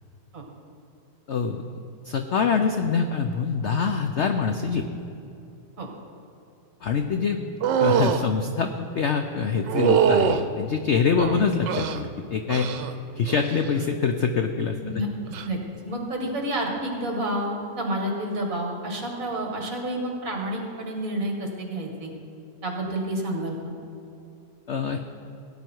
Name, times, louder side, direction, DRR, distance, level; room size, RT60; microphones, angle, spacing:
voice 1, 1.3-1.6 2.0-4.9 6.8-7.4 7.8-12.7 13.2-14.8 24.7-25.0, left 5 dB, 65° left, 6 dB, 0.7 m, -24 dB
sound 1, 7.6-8.2 9.7-10.4 11.2-12.0 12.5-12.9 13.3-13.7 15.3-15.5, right 8 dB, 80° right, 1.3 m, -23 dB
voice 2, 14.8-15.6 15.8-22.1 22.6-23.6, right 1 dB, 50° right, 0 dB, 2.3 m, -29 dB
17.5 x 9.6 x 4.6 m, 2.7 s
omnidirectional pair, 1.9 m